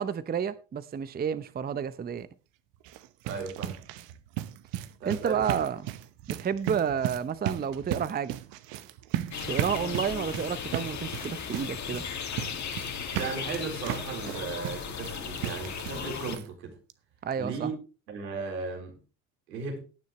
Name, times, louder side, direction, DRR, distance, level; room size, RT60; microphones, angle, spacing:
voice 1, 0.0-2.3 5.0-5.9 6.4-8.4 9.5-12.1 17.2-17.7, right 7 dB, 20° right, 0.7 m, -30 dB
sound 1, 2.7-16.1 16.3-16.5 16.9-17.0 17.3-17.4, right 13 dB, 60° right, 1.1 m, -36 dB
voice 2, 3.2-3.8 5.0-5.4 13.1-16.7 17.4-17.8 18.1-19.0 19.5-19.8, right 4 dB, 85° right, 4.2 m, -36 dB
sound 2, 9.3-16.4, left 7 dB, 35° left, 2.3 m, -36 dB
17.5 x 9.3 x 3.1 m
hypercardioid pair, 75°, 49 cm